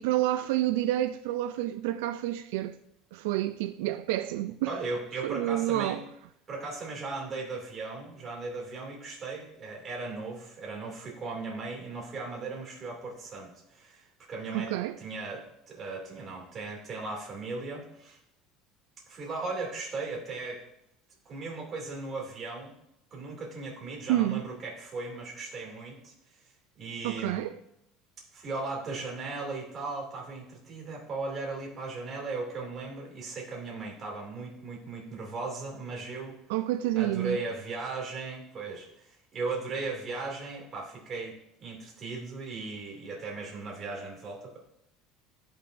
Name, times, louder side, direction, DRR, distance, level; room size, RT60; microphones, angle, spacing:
voice 1, 0.0-2.8 3.1-4.8 5.2-6.0 14.5-15.0 24.1-24.5 27.0-27.6 36.5-37.4, right 14 dB, 90° right, 0.3 m, -29 dB
voice 2, 4.7-6.0 6.5-14.7 15.0-18.2 19.1-20.6 21.2-22.7 23.1-26.4 26.8-27.4 28.3-36.4 36.9-44.6, right 3 dB, 25° right, 2.4 m, -37 dB
13.5 x 5.3 x 2.6 m
cardioid pair, 165°, 0 cm